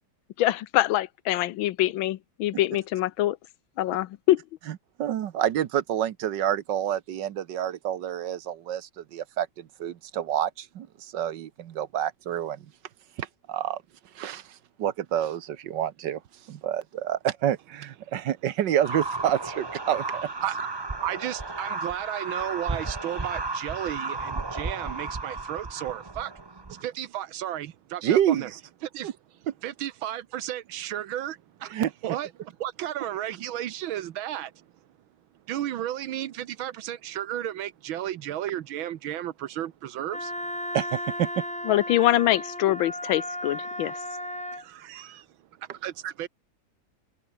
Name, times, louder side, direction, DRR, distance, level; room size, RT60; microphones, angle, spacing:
voice 1, 0.4-3.4 3.8-4.4 41.6-44.0, left 14 dB, 85° left, 1.5 m, -24 dB
voice 2, 5.0-12.6 13.2-13.8 14.1-14.4 14.8-16.2 16.5-20.3 28.0-28.5 29.0-29.1 31.7-31.9 40.7-41.4 46.0-46.1, right 10 dB, 65° right, 1.5 m, -28 dB
sound 1, 18.8-26.8, right 3 dB, 25° right, 0.6 m, -34 dB
voice 3, 21.0-26.3 26.7-28.5 28.8-29.2 29.6-34.7 35.5-40.3 44.5-45.3 45.6-46.3, right 12 dB, 85° right, 1.8 m, -34 dB
Wind instrument woodwind instrument, 40.1-44.6, equal, 5° left, 2.1 m, -35 dB
open air
omnidirectional pair, 2.1 m